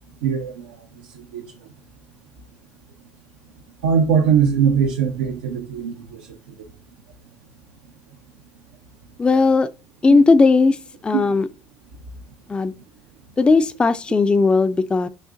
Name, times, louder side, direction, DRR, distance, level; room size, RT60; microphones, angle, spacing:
voice 1, 0.2-1.7 3.8-6.7 10.1-10.2 11.1-11.3, right 7 dB, 85° right, 0.5 m, -22 dB
voice 2, 9.2-9.7 10.0-10.8 11.0-11.5 12.5-12.7 13.4-15.1, left 3 dB, 20° left, 0.3 m, -16 dB
6.2 x 2.5 x 2.5 m
hypercardioid pair, 75°, 5 cm